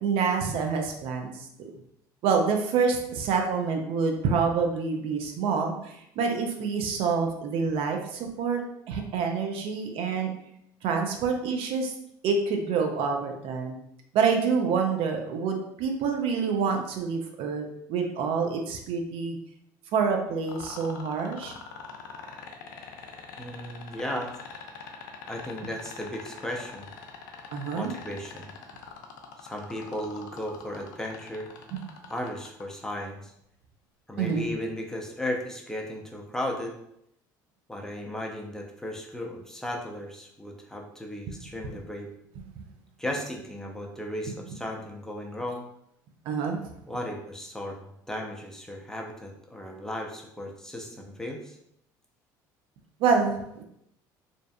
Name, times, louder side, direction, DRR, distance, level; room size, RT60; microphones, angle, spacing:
voice 1, 0.0-1.7 2.2-8.6 8.9-10.3 10.8-11.9 12.2-13.7 14.1-19.4 19.9-21.5 27.5-27.9 31.7-31.8 34.2-34.5 46.3-46.6 53.0-53.6, right 5 dB, 65° right, 3 dB, 0.4 m, -27 dB
sound 1, 20.5-32.6 34.3-34.4, left 7 dB, 85° left, 0.4 m, -43 dB
voice 2, 23.4-24.3 25.3-26.9 27.7-28.5 29.4-31.5 32.1-33.3 34.1-36.7 37.7-42.1 43.0-45.6 46.9-47.8 48.1-51.6, left 1 dB, 5° left, 0 dB, 0.5 m, -35 dB
2.5 x 2.4 x 2.2 m, 0.76 s
hypercardioid pair, 70°, 10 cm